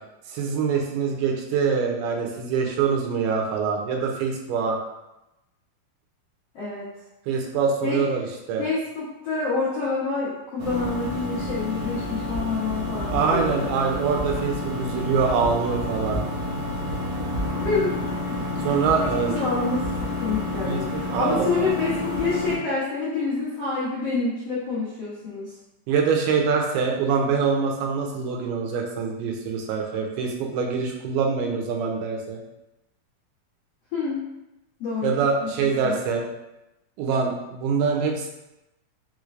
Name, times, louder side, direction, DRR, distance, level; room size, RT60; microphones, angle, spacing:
voice 1, 0.3-4.8 7.3-8.6 13.1-16.2 18.6-19.3 20.6-21.7 25.9-32.4 35.0-36.2 37.0-38.3, right 5 dB, 90° right, 1 dB, 2.6 m, -24 dB
voice 2, 6.5-6.9 7.8-8.0 8.6-13.6 17.6-17.9 18.6-25.5 33.9-34.2 34.8-35.5 35.8-36.0, left 4 dB, 85° left, -9 dB, 1.3 m, -27 dB
sound 1, 10.6-22.6, left 1 dB, 65° right, 1.6 m, -29 dB
5.7 x 3.2 x 2.5 m, 0.93 s
omnidirectional pair, 4.4 m